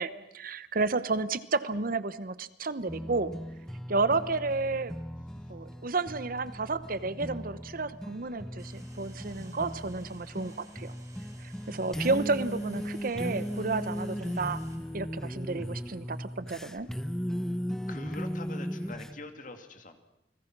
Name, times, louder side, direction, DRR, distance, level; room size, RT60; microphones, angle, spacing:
voice 1, 0.0-3.3 3.9-4.9 5.5-10.9 11.4-14.6 14.9-16.9, right 3 dB, 50° right, 15 dB, 0.9 m, -31 dB
sound 1, 2.9-19.2, equal, 5° left, 0.8 m, -37 dB
Bell Jet Ranger Landing, 8.6-14.8, right 3 dB, 20° right, 3.4 m, -57 dB
voice 2, 17.9-20.0, left 2 dB, 45° left, 7 dB, 2.2 m, -44 dB
29.0 x 20.0 x 6.0 m, 0.87 s
head